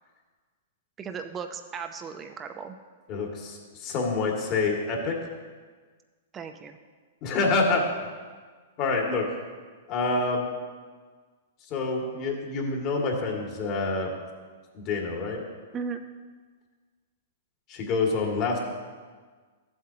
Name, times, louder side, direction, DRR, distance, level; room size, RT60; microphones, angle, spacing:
voice 1, 1.0-2.8 6.3-6.8 15.7-16.0, right 6 dB, 25° right, 6 dB, 0.7 m, -36 dB
voice 2, 3.1-5.2 7.2-7.8 8.8-9.3 9.9-10.5 11.7-14.1 14.7-15.4 17.7-18.6, left 3 dB, 40° left, -1 dB, 2.2 m, -27 dB
14.0 x 7.8 x 2.9 m, 1.5 s
hypercardioid pair, 120°, 0 cm